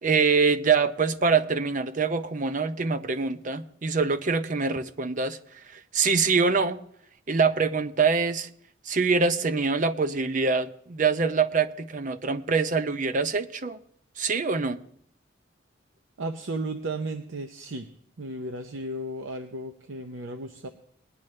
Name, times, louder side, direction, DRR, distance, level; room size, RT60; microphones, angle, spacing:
voice 1, 0.0-5.4 5.7-6.8 7.3-8.5 8.9-13.8 14.2-14.8, right 4 dB, 40° right, 11 dB, 0.6 m, -24 dB
voice 2, 16.2-17.9 18.2-20.7, right 2 dB, 80° right, 7 dB, 0.7 m, -34 dB
20.0 x 10.5 x 3.2 m, 0.67 s
head